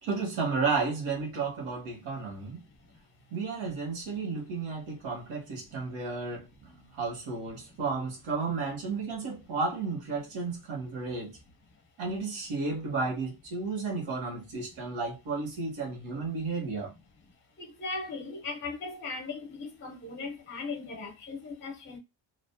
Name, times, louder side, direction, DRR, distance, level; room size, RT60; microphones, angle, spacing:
voice 1, 0.0-2.6 3.3-11.4 12.0-16.9, right 4 dB, 80° right, 1.1 m, -33 dB
voice 2, 17.8-22.0, left 3 dB, 25° left, 0.5 m, -38 dB
2.4 x 2.1 x 2.5 m
cardioid pair, 150°, 48 cm